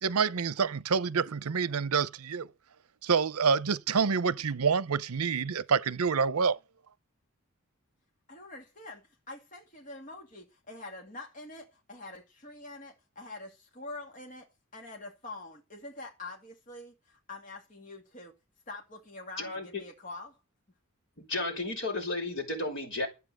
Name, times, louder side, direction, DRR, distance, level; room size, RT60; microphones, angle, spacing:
voice 1, 0.0-2.5 3.0-6.6, right 5 dB, 80° right, 0.7 m, -27 dB
voice 2, 8.3-18.3 18.7-20.4, left 2 dB, 35° left, 2.4 m, -45 dB
voice 3, 19.4-19.8 21.3-23.1, left 2 dB, 55° left, 6.0 m, -33 dB
13.0 x 8.3 x 7.7 m
head